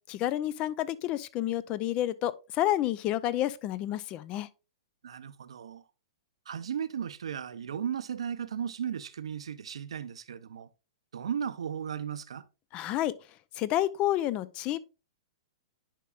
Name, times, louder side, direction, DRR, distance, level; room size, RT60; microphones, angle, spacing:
voice 1, 0.1-4.5 12.7-13.1 13.6-14.8, left 13 dB, 35° left, 0.5 m, -29 dB
voice 2, 5.0-5.8 6.5-10.7 11.1-12.4, right 8 dB, 75° right, 0.6 m, -35 dB
10.0 x 5.2 x 2.4 m
hypercardioid pair, 115°, 3 cm